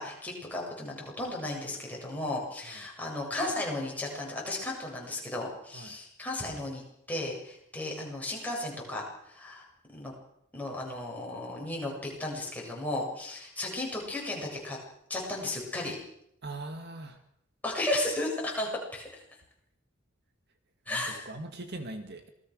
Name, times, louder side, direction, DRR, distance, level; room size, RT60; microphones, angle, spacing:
voice 1, 0.0-6.8 7.1-9.6 9.9-10.1 10.5-14.8 15.1-16.0 17.6-19.2 20.9-21.2, left 1 dB, 10° left, -2 dB, 7.7 m, -34 dB
voice 2, 16.4-17.2 20.9-22.3, right 2 dB, 55° right, 7 dB, 2.1 m, -41 dB
27.0 x 19.5 x 6.5 m, 0.76 s
head